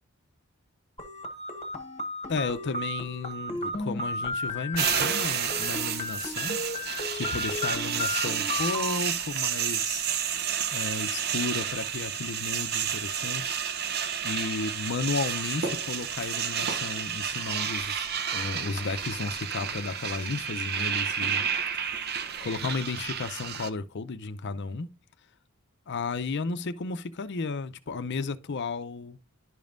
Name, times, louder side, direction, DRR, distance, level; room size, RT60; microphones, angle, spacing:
sound 1, 1.0-9.0, left 1 dB, 30° left, 1.2 m, -34 dB
voice 1, 2.3-6.6 7.1-10.1 10.7-13.6 14.2-21.5 22.4-24.9 25.9-29.2, left 4 dB, 55° left, 0.6 m, -33 dB
sound 2, 4.8-23.7, right 8 dB, 50° right, 0.6 m, -31 dB
11.0 x 5.3 x 2.5 m
head